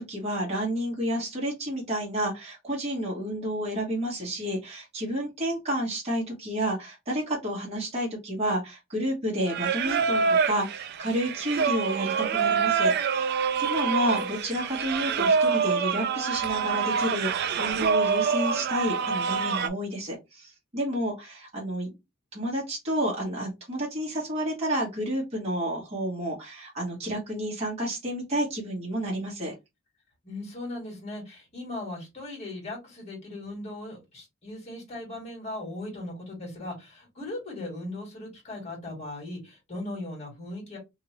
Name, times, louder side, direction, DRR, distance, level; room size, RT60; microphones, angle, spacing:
voice 1, 0.0-21.9 22.3-29.5, equal, 30° right, 1.3 m, -30 dB
Singing, 9.5-19.7, right 6 dB, 55° right, 0.4 m, -26 dB
voice 2, 30.2-40.8, left 1 dB, 35° left, 1.8 m, -38 dB
2.9 x 2.7 x 2.9 m
head